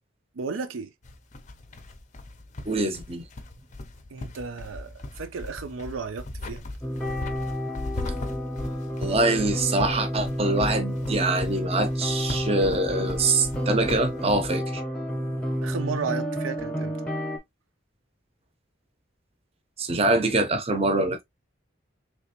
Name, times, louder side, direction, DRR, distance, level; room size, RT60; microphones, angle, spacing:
voice 1, 0.3-0.9 4.1-6.6 15.1-17.0, right 5 dB, 85° right, 0.5 m, -34 dB
sound 1, 1.0-14.5, left 2 dB, 35° left, 0.5 m, -38 dB
voice 2, 2.7-3.3 9.0-14.8 19.8-21.2, right 2 dB, 30° right, 0.6 m, -24 dB
sound 2, 6.8-17.4, equal, 5° left, 0.7 m, -30 dB
3.3 x 2.9 x 2.8 m
head